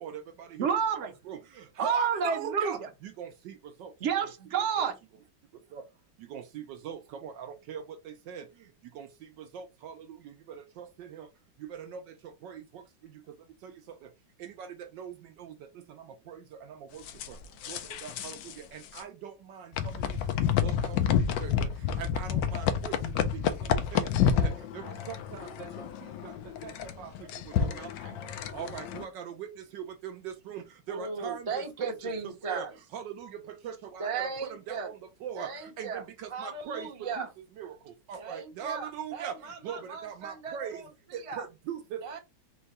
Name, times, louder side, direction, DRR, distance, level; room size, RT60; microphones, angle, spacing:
voice 1, 0.0-0.7 1.3-3.5 3.8-3.9 4.8-4.9 5.7-5.8 6.3-8.4 9.0-9.1 9.5-10.2 10.8-11.3 11.7-12.0 12.4-12.6 13.6-13.7 14.4-15.1 15.4-15.5 16.3-16.4 16.7-17.0 17.3-17.4 17.7-20.0 20.6-21.7 22.0-23.3 23.7-24.1 24.4-25.7 26.2-26.3 26.6-26.7 27.0-27.1 27.6-27.9 28.5-31.9 32.4-32.7 32.9-35.5 35.8-37.3 37.6-37.7 38.1-39.4 39.6-40.8 41.1-42.0, right 8 dB, 75° right, 1.2 m, -41 dB
voice 2, 0.6-1.1 1.8-2.7 4.0-4.9, right 7 dB, 50° right, 0.9 m, -28 dB
sound 1, 17.1-18.5 18.8-19.0 19.7-29.0, left 8 dB, 80° left, 1.3 m, -29 dB
voice 3, 30.9-32.8 34.0-34.9 35.4-37.3 38.2-41.5 42.0-42.2, right 5 dB, 30° right, 0.6 m, -37 dB
4.6 x 2.2 x 4.0 m
omnidirectional pair, 2.1 m